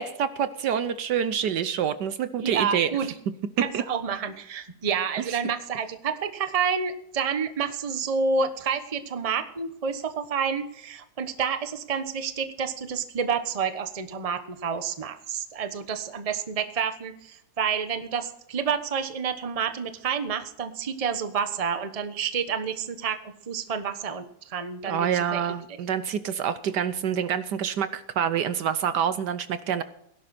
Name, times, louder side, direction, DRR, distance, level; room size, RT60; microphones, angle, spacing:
voice 1, 0.0-2.9 3.7-3.8 24.8-29.8, right 8 dB, 70° right, 13 dB, 1.3 m, -27 dB
voice 2, 2.4-3.1 3.6-23.2 23.5-25.5, right 6 dB, 25° right, 9 dB, 0.9 m, -29 dB
17.5 x 11.0 x 4.3 m, 0.73 s
omnidirectional pair, 2.1 m